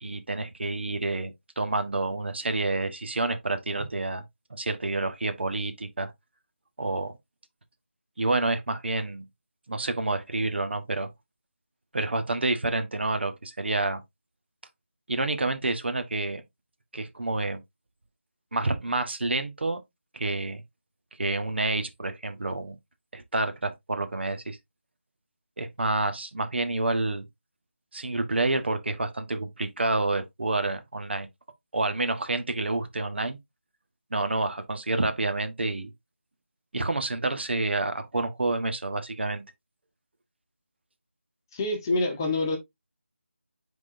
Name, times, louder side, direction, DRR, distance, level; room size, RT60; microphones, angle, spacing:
voice 1, 0.0-4.2 4.5-6.1 6.8-7.2 8.2-9.2 9.7-11.1 11.9-14.0 15.1-16.4 16.9-17.6 18.5-19.8 20.1-20.6 21.2-22.8 23.1-24.6 25.6-27.2 27.9-31.3 31.7-33.4 34.1-35.9 36.7-39.4, right 2 dB, 55° right, 1.3 m, -28 dB
voice 2, 41.5-42.6, left 2 dB, 15° left, 1.1 m, -26 dB
9.5 x 3.8 x 2.6 m
figure-of-eight pair, 170°, 7 cm